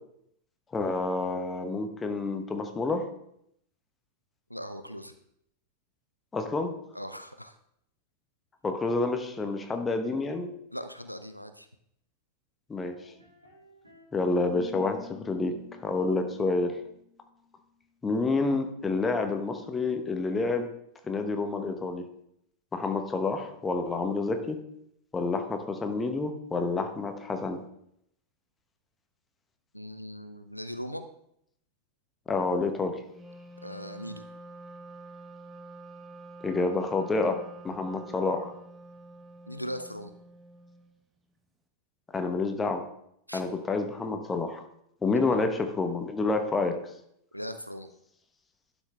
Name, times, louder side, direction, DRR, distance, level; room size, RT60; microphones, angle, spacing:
voice 1, 0.7-3.1 6.3-6.7 8.6-10.5 12.7-12.9 14.1-15.5 15.8-16.8 18.0-20.7 21.1-22.0 22.7-24.6 25.1-27.6 32.3-33.0 36.4-37.4 37.6-38.5 42.1-42.8 43.3-44.6 45.0-46.7, left 3 dB, 15° left, 6 dB, 1.1 m, -28 dB
voice 2, 4.5-5.1 6.9-7.5 10.7-11.7 29.7-31.1 33.6-34.2 39.5-40.1 43.3-43.4 45.2-45.3 47.3-47.9, equal, 90° left, 9 dB, 0.5 m, -39 dB
sound 1, 13.0-14.1 14.4-17.4, left 6 dB, 85° right, 2.8 m, -49 dB
Wind instrument woodwind instrument, 33.1-40.9, right 2 dB, 15° right, 1.1 m, -47 dB
11.5 x 6.2 x 3.4 m, 0.74 s
figure-of-eight pair, 90°, 0 cm